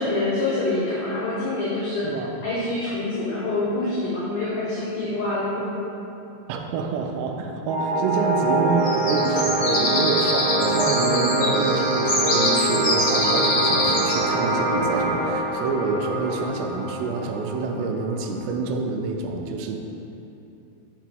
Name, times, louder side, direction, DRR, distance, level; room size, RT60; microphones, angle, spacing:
voice 1, 0.0-2.1 2.4-5.7, left 2 dB, 75° left, -7 dB, 1.8 m, -26 dB
voice 2, 2.0-2.4 6.5-19.8, right 4 dB, 85° right, 3 dB, 2.8 m, -27 dB
sound 1, 7.7-18.7, right 2 dB, 70° right, 2.3 m, -25 dB
sound 2, 8.8-14.2, left 1 dB, 60° left, 1.8 m, -24 dB
5.8 x 5.0 x 4.6 m, 2.9 s
omnidirectional pair, 5.0 m